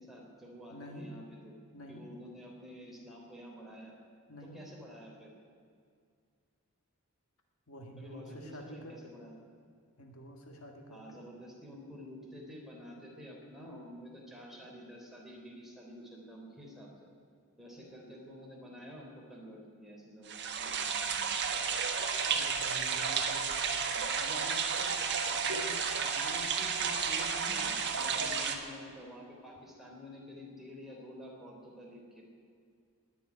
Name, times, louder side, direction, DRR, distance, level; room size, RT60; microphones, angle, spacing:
voice 1, 0.0-1.6 1.9-3.9 4.4-5.3 8.0-9.4 10.9-16.9 17.6-21.3 23.9-24.9 25.2-32.2, equal, ahead, -2 dB, 3.5 m, -49 dB
voice 2, 0.7-1.1 1.7-2.1 4.3-4.6 7.7-9.1 10.0-11.2 22.2-23.6, equal, 70° left, 3 dB, 1.8 m, -48 dB
sound 1, 20.3-28.5, right 6 dB, 55° right, 1.5 m, -32 dB
19.5 x 7.4 x 9.9 m, 2.2 s
head